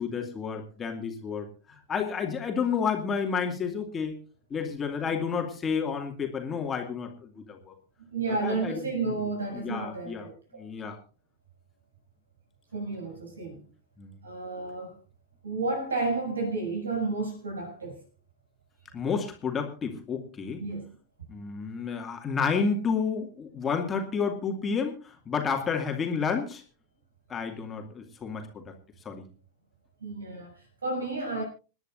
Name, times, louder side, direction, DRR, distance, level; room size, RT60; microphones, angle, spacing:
voice 1, 0.0-4.1 4.5-7.7 8.4-9.2 9.5-10.3 10.5-11.0 14.0-14.1 18.9-20.6 21.3-26.6 27.3-28.7 29.0-29.3, left 6 dB, 20° left, 2.4 m, -31 dB
voice 2, 8.0-10.7 12.7-13.6 14.2-15.0 15.4-18.0 20.6-21.0 30.0-31.4, right 3 dB, 70° right, 7.2 m, -32 dB
27.5 x 10.5 x 2.6 m
figure-of-eight pair, 90°, 0 cm